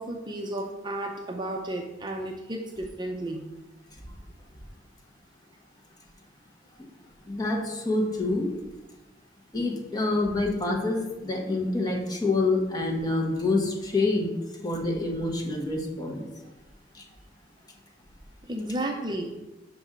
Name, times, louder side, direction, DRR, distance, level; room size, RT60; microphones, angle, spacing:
voice 1, 0.0-3.4 18.4-19.4, right 1 dB, 25° right, 2 dB, 0.5 m, -33 dB
voice 2, 7.3-8.5 9.5-14.3 14.6-16.2 16.9-17.0, left 2 dB, 20° left, 0 dB, 1.2 m, -27 dB
6.0 x 5.2 x 5.0 m, 1.1 s
head